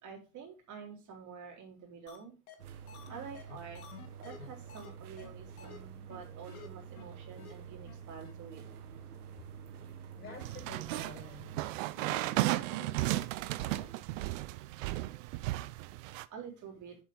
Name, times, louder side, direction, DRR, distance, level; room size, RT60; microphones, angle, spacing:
voice 1, 0.0-2.3 3.1-3.8 4.2-8.6 16.3-17.0, right 6 dB, 40° right, 1 dB, 3.9 m, -48 dB
sound 1, 2.1-2.2 2.5-2.6 2.9-4.9 5.2-5.3 5.6-5.8 6.1-6.2 6.5-6.7 7.0-7.1 7.4-7.5 7.9-8.0 8.2-8.3, left 7 dB, 70° left, 2.2 m, -50 dB
sound 2, 2.6-11.6, right 7 dB, 75° right, 1.4 m, -48 dB
voice 2, 10.2-13.9, left 2 dB, 25° left, 0 dB, 5.7 m, -50 dB
sound 3, 10.4-16.3, right 17 dB, 60° right, 0.7 m, -34 dB
7.5 x 7.2 x 5.1 m, 0.32 s
hypercardioid pair, 85°, 45 cm